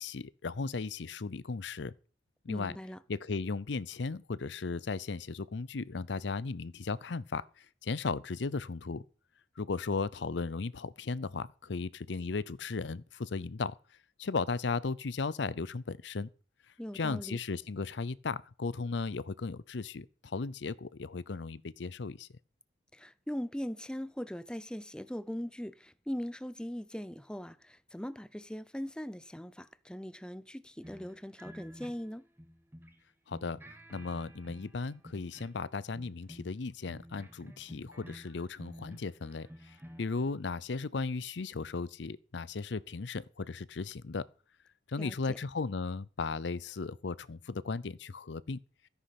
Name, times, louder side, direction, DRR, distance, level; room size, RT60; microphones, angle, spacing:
voice 1, 0.0-1.9 2.4-2.8 3.1-9.0 9.6-13.8 14.2-16.3 16.9-22.3 33.3-33.6 33.9-44.2 44.9-48.6, left 4 dB, 75° left, 0.6 m, -36 dB
voice 2, 2.5-3.0 16.8-17.4 22.9-32.3 45.0-45.4, equal, 5° left, 0.6 m, -40 dB
sound 1, 30.8-33.0 33.3-35.6 35.9-40.3, equal, 10° right, 1.5 m, -51 dB
13.5 x 9.8 x 5.9 m
head